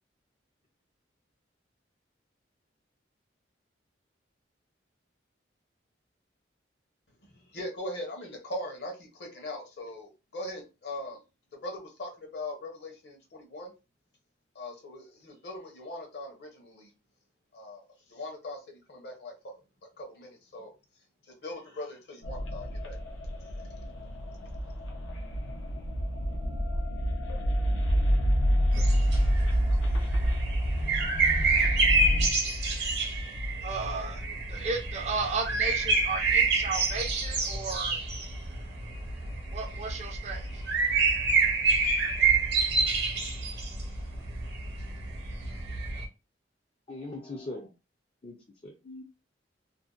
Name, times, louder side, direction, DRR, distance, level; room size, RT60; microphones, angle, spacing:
voice 1, 7.3-11.2 11.6-13.7 14.5-16.9 17.5-19.5 20.0-20.7 21.3-23.0 23.4-23.6, left 1 dB, 60° left, 0.8 m, -40 dB
sound 1, 22.2-32.3, equal, 90° left, 0.5 m, -28 dB
sound 2, 28.7-46.0, right 3 dB, 60° right, 0.8 m, -28 dB
voice 2, 33.6-34.2 34.5-38.0 39.5-40.5, right 4 dB, 35° right, 0.4 m, -34 dB
voice 3, 46.9-47.7 48.2-48.4 48.6-49.0, left 2 dB, 30° left, 0.4 m, -40 dB
2.6 x 2.1 x 2.3 m
head